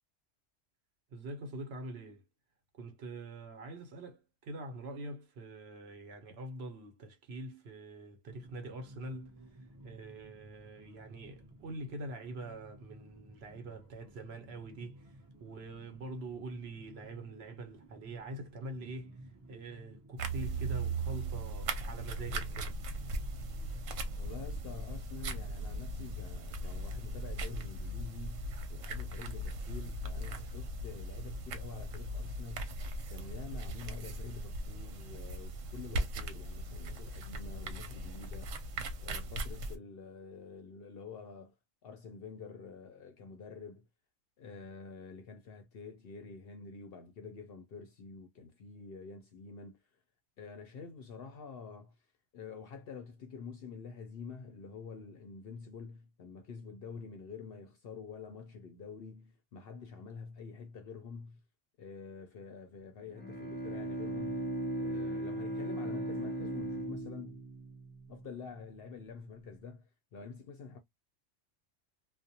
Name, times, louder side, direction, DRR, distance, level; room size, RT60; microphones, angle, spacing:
voice 1, 1.1-2.2 2.7-9.4 9.8-15.1 15.4-19.2 19.5-22.8, right 2 dB, 60° right, 0.9 m, -44 dB
sound 1, 8.2-26.3, right 1 dB, 30° right, 0.3 m, -55 dB
sound 2, 20.2-39.8, right 2 dB, 85° right, 1.0 m, -38 dB
voice 2, 24.2-32.8 33.1-38.6 39.0-41.6 41.8-43.9 44.4-49.8 50.4-52.0 52.3-61.4 61.8-67.4 68.1-70.8, left 5 dB, 65° left, 0.6 m, -48 dB
Bowed string instrument, 63.1-68.6, right 1 dB, 10° left, 0.6 m, -38 dB
2.4 x 2.0 x 2.7 m
omnidirectional pair, 1.3 m